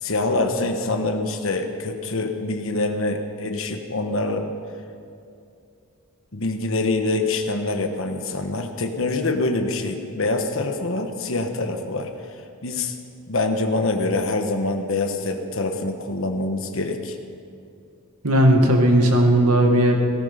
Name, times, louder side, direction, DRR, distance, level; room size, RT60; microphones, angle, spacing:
voice 1, 0.0-4.5 6.3-13.0 13.3-17.2, left 2 dB, 60° left, 5 dB, 1.2 m, -25 dB
voice 2, 18.2-20.0, right 1 dB, 85° right, 2 dB, 2.0 m, -16 dB
17.0 x 14.0 x 5.1 m, 2.5 s
head